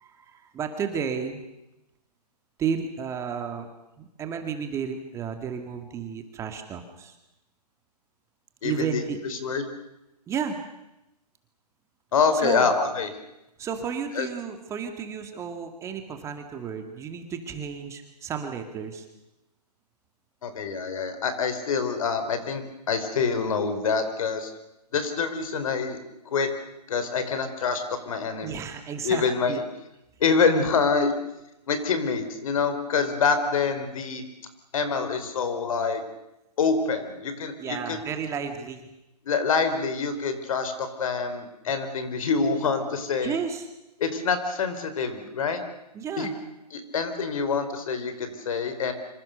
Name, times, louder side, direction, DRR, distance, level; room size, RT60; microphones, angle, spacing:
voice 1, 0.0-1.4 2.6-3.7 4.0-7.1 8.6-9.2 10.3-10.6 12.3-12.7 13.6-19.1 28.4-29.6 37.6-38.8 43.2-43.7 45.9-46.3, right 7 dB, 15° right, 6 dB, 2.1 m, -32 dB
voice 2, 8.6-9.7 12.1-13.1 14.1-14.3 20.4-24.5 24.9-26.0 26.3-26.5 26.9-28.6 29.0-29.6 30.2-31.1 31.7-34.2 34.7-36.0 36.6-38.0 39.3-43.4 44.0-45.6 46.2-46.3 46.7-48.9, left 5 dB, 55° left, 9 dB, 4.7 m, -26 dB
26.0 x 26.0 x 6.8 m, 0.91 s
hypercardioid pair, 150°, 21 cm